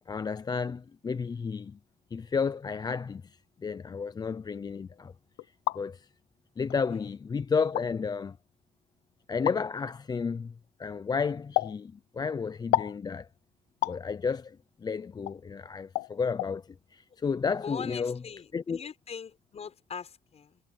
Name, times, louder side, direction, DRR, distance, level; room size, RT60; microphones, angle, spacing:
voice 1, 0.1-1.8 2.1-5.1 5.7-6.1 6.6-8.4 9.3-10.5 10.8-13.3 13.9-18.2 18.5-18.8, left 5 dB, 25° left, 0.5 m, -32 dB
sound 1, 5.4-5.8 6.7-6.8 7.6-7.9 9.5-9.6 11.6-11.8 12.7-13.0 13.8-14.0 15.3-15.4 16.0-16.1 16.4-16.5, left 18 dB, 85° left, 1.0 m, -29 dB
voice 2, 17.6-20.6, left 6 dB, 40° left, 6.3 m, -41 dB
cardioid pair, 110°, 17 cm